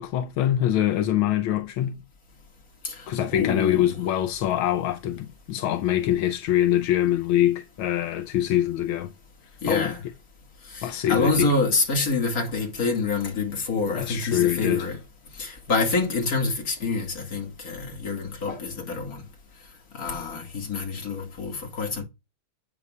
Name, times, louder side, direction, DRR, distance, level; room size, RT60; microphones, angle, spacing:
voice 1, 0.0-2.0 3.1-9.1 9.7-9.9 10.8-11.5 13.9-14.9, left 12 dB, 80° left, 1.5 m, -24 dB
voice 2, 2.8-3.9 9.6-10.0 10.7-15.0 15.4-19.2 19.9-22.0, left 3 dB, 45° left, 2.5 m, -27 dB
11.0 x 8.2 x 2.4 m
omnidirectional pair, 2.3 m